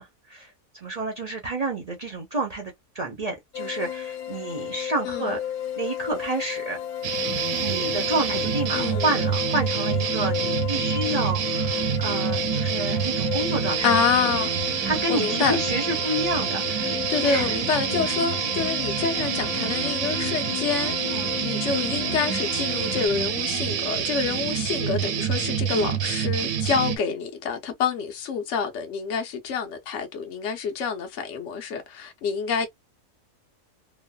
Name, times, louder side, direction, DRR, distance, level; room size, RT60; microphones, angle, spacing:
voice 1, 0.0-5.4 5.8-6.8 7.6-13.9 14.8-17.6 21.1-21.3 32.5-32.7, right 2 dB, 45° right, 0.5 m, -30 dB
sound 1, 3.5-23.1, left 10 dB, 80° left, 1.1 m, -33 dB
voice 2, 5.0-5.4 8.7-9.1 13.8-15.6 17.1-21.0 21.4-32.7, left 6 dB, 55° left, 1.0 m, -27 dB
sound 2, 7.0-27.0, right 8 dB, 70° right, 0.9 m, -27 dB
3.0 x 2.1 x 2.2 m
omnidirectional pair, 1.6 m